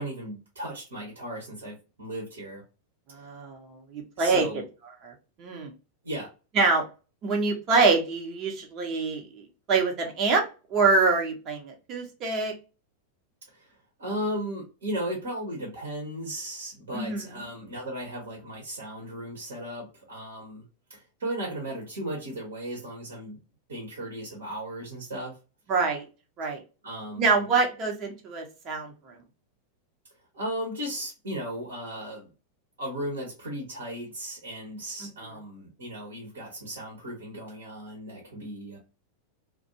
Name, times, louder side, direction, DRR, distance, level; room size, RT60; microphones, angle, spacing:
voice 1, 0.0-2.6 4.2-4.7 6.0-6.3 13.5-13.7 14.0-20.6 20.9-23.4 23.7-25.3 26.8-27.5 30.3-32.3 32.8-38.8, right 1 dB, 65° right, 0 dB, 1.0 m, -36 dB
voice 2, 3.1-3.6 3.9-4.5 5.0-5.1 5.4-5.7 6.5-6.8 7.2-10.4 10.7-12.5 16.9-17.3 25.7-26.0 26.4-26.6 27.2-29.2 35.0-35.1, right 4 dB, 35° right, 1 dB, 0.9 m, -25 dB
2.5 x 2.2 x 2.7 m, 0.32 s
figure-of-eight pair, 90°, 0 cm